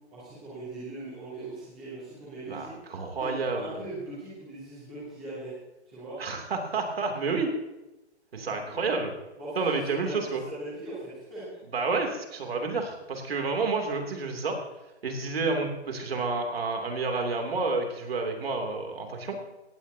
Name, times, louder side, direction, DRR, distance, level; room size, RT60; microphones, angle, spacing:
voice 1, 0.1-2.7 3.2-5.5 5.9-6.2 8.3-9.0 9.4-11.4 15.0-15.2, right 2 dB, ahead, -12 dB, 0.6 m, -40 dB
voice 2, 2.5-3.7 6.2-7.5 8.3-9.1 9.5-10.4 11.7-14.6 15.0-19.4, right 3 dB, 60° right, 3 dB, 3.1 m, -30 dB
18.0 x 15.5 x 2.9 m, 0.99 s
hypercardioid pair, 175°, 35 cm